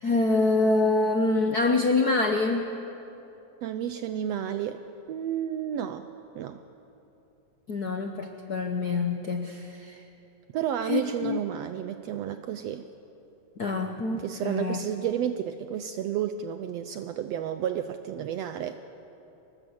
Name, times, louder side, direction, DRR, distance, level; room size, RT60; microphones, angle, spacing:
voice 1, 0.0-2.7 7.7-10.0 10.8-11.4 13.6-14.8, left 3 dB, 70° left, 4 dB, 0.9 m, -26 dB
voice 2, 3.6-4.8 5.1-6.6 10.5-12.9 14.1-18.8, right 10 dB, 75° right, 9 dB, 1.6 m, -31 dB
25.5 x 19.5 x 8.0 m, 2.9 s
omnidirectional pair, 3.3 m